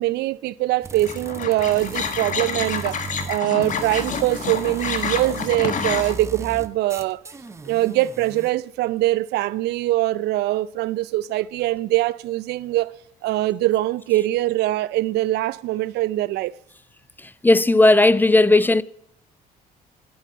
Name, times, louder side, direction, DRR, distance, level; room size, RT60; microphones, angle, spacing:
voice 1, 0.0-3.0 3.3-7.2 7.7-12.9 13.2-16.5, right 16 dB, 75° right, 0.5 m, -23 dB
sound 1, 0.8-8.5, right 4 dB, 15° right, 0.7 m, -37 dB
sound 2, 1.1-6.1, left 6 dB, 50° left, 1.5 m, -28 dB
voice 2, 17.4-18.8, left 2 dB, 10° left, 0.4 m, -15 dB
11.0 x 8.3 x 5.3 m
cardioid pair, 110°, 17 cm